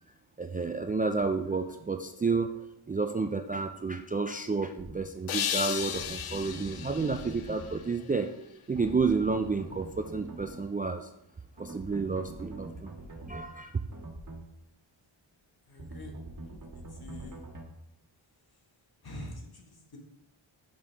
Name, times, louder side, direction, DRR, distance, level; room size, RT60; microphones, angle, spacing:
voice 1, 0.4-2.5 2.9-8.3 8.7-11.1 11.6-12.9 13.3-13.7, right 4 dB, 20° right, 6 dB, 0.3 m, -30 dB
sound 1, 4.8-5.0 5.9-7.8 8.7-10.6 11.6-13.5 13.9-14.4 15.8-17.7, right 2 dB, 40° right, 1.6 m, -44 dB
sound 2, 5.3-8.4, left 9 dB, 85° left, 0.6 m, -35 dB
voice 2, 15.7-16.1 16.4-16.6 16.9-17.4 19.0-20.0, left 1 dB, 50° left, 1 dB, 1.6 m, -45 dB
6.6 x 5.2 x 3.4 m, 0.80 s
cardioid pair, 60°, 49 cm